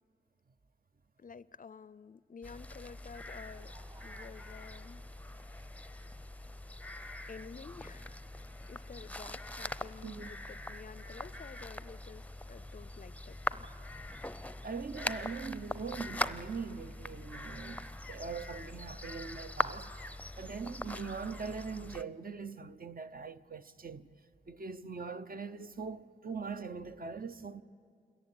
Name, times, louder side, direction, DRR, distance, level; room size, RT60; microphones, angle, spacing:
voice 1, 1.2-3.7 4.0-5.0 7.3-8.2 8.7-13.7, left 5 dB, 50° left, 0.5 m, -51 dB
sound 1, 2.4-22.0, left 1 dB, 10° left, 0.6 m, -42 dB
Laughter, 3.0-6.0 6.8-6.9 8.4-8.5, right 3 dB, 30° right, 1.9 m, -63 dB
voice 2, 14.6-19.9 20.4-24.1 24.5-27.6, right 5 dB, 50° right, 0.8 m, -41 dB
26.5 x 14.5 x 9.8 m
cardioid pair, 50°, 18 cm